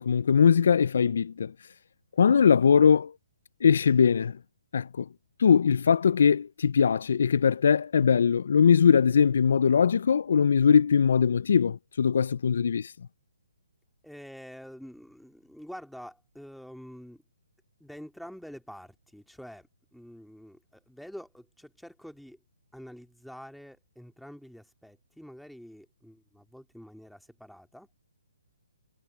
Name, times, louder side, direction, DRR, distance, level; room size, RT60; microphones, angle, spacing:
voice 1, 0.0-1.5 2.2-3.1 3.6-4.4 4.7-5.1 5.4-12.9, left 7 dB, 65° left, 0.3 m, -21 dB
voice 2, 14.0-17.2 17.8-22.4 22.7-27.9, equal, ahead, 2.3 m, -47 dB
hypercardioid pair, 160°, 0 cm